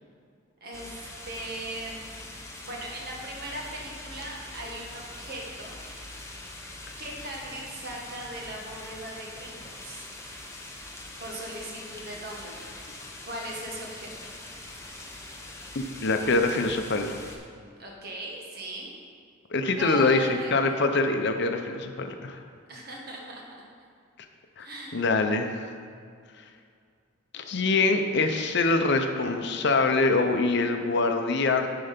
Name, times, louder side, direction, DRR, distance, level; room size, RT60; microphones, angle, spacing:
voice 1, 0.6-2.2 2.6-5.8 7.0-10.1 11.2-12.8 13.2-14.3 17.8-18.9 19.8-20.8 22.7-23.4 24.6-25.0, right 1 dB, 50° right, -2 dB, 1.5 m, -39 dB
sound 1, 0.7-17.4, left 2 dB, 15° left, 0.9 m, -43 dB
voice 2, 15.7-17.1 19.5-22.4 24.6-24.7 24.9-25.6 27.3-31.7, left 3 dB, 60° left, 6 dB, 0.6 m, -24 dB
9.8 x 4.8 x 5.1 m, 2.2 s
head